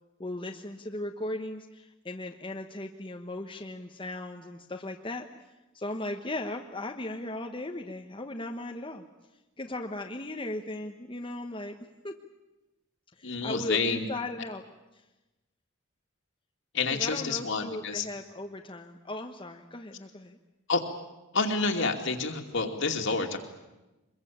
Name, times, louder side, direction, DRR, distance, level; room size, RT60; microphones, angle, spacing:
voice 1, 0.2-5.3 5.7-9.0 9.6-11.8 12.0-12.2 13.2-14.6 16.9-20.4, left 1 dB, 25° left, 3 dB, 1.1 m, -37 dB
voice 2, 13.2-14.1 16.7-18.1 20.7-20.9 21.3-23.4, left 4 dB, 60° left, 4 dB, 2.6 m, -28 dB
24.5 x 22.0 x 8.7 m, 1.0 s
head